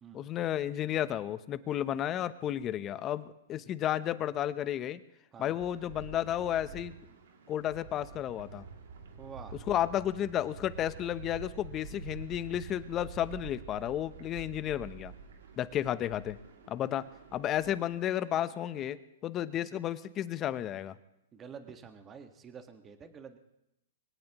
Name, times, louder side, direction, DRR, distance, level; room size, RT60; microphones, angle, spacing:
voice 1, 0.1-5.0 5.4-6.9 7.5-8.6 9.7-15.1 15.6-16.4 16.7-17.0 17.3-21.0, left 11 dB, 25° left, 14 dB, 0.8 m, -32 dB
sound 1, 5.6-18.8, right 5 dB, 80° right, 2.7 m, -48 dB
voice 2, 9.2-9.6 21.3-23.4, right 6 dB, 20° right, 7 dB, 1.6 m, -48 dB
23.5 x 17.5 x 3.1 m, 0.85 s
hypercardioid pair, 135°, 0 cm